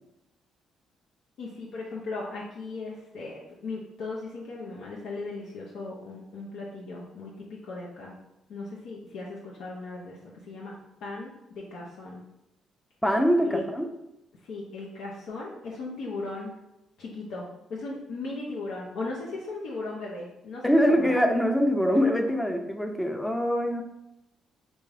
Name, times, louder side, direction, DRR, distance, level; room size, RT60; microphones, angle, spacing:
voice 1, 1.4-8.1 8.5-10.7 11.0-12.2 13.4-13.6 14.4-16.5 17.0-17.4 17.7-21.2, left 3 dB, 80° left, -4 dB, 0.6 m, -37 dB
voice 2, 13.0-13.9 20.6-23.8, equal, 5° left, 3 dB, 0.5 m, -23 dB
3.5 x 2.6 x 3.3 m, 0.88 s
cardioid pair, 90°, 0 cm